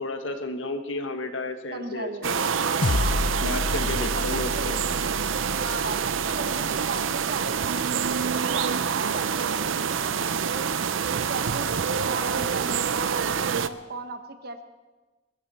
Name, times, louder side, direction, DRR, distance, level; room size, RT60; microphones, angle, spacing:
voice 1, 0.0-2.6 3.4-4.7, left 2 dB, 80° left, 6 dB, 1.5 m, -32 dB
voice 2, 1.7-2.3 2.9-3.7 4.1-4.8 5.6-7.8 8.1-10.6 11.1-11.7 12.0-14.6, right 3 dB, 50° right, 7 dB, 1.3 m, -37 dB
sound 1, 2.2-13.7, right 6 dB, 85° right, 0.6 m, -26 dB
sound 2, 2.8-7.4, left 2 dB, 45° left, 0.6 m, -30 dB
21.5 x 14.5 x 4.3 m, 1.2 s
head